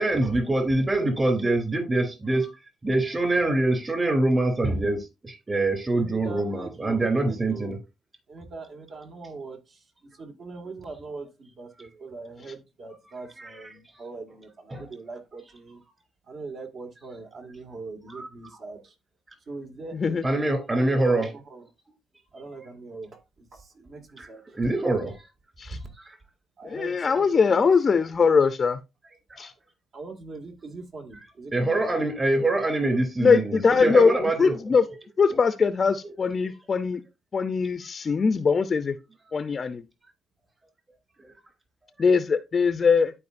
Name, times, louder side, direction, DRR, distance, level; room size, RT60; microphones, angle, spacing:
voice 1, 0.0-2.5 2.8-7.8 13.4-13.7 14.7-14.9 18.1-18.7 20.2-21.3 24.2-25.2 26.0-26.1 29.3-29.5 31.5-34.6 36.0-36.1, right 2 dB, 30° right, 2.9 m, -25 dB
voice 2, 5.9-7.7 8.3-9.6 10.2-15.8 16.3-18.9 19.5-20.9 21.2-21.7 22.3-23.2 23.5-24.4 25.7-25.9 26.6-27.7 29.9-31.8, right 3 dB, 55° right, 2.0 m, -41 dB
voice 3, 19.9-20.2 25.6-25.8 26.6-28.8 29.4-29.5 33.2-34.8 35.2-37.0 37.3-39.0 39.3-39.8 42.0-43.1, left 5 dB, 40° left, 0.5 m, -21 dB
12.5 x 4.7 x 2.5 m
cardioid pair, 90°, 0 cm